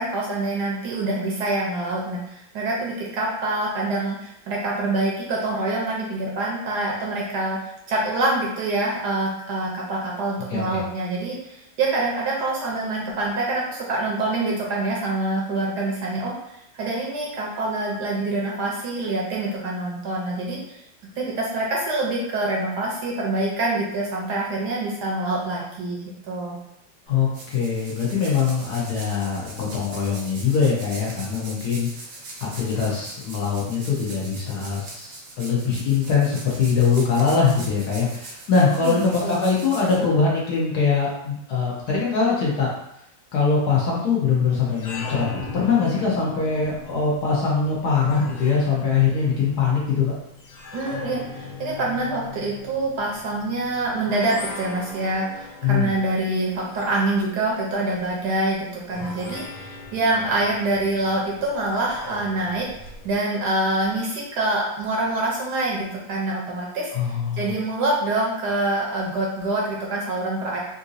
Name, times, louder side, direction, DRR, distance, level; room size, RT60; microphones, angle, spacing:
voice 1, 0.0-7.6 7.9-20.8 21.2-26.6 38.8-39.5 50.7-62.7 63.0-70.6, right 2 dB, 70° right, -3 dB, 1.1 m, -26 dB
voice 2, 10.5-10.8 27.1-31.9 32.6-42.7 43.3-50.1 55.6-55.9 66.9-67.5, left 5 dB, 65° left, -4 dB, 1.1 m, -22 dB
sound 1, 27.1-40.6, right 2 dB, 85° right, 0.7 m, -41 dB
sound 2, 44.6-63.2, left 4 dB, 80° left, 1.3 m, -40 dB
3.8 x 2.6 x 2.5 m, 0.79 s
omnidirectional pair, 2.1 m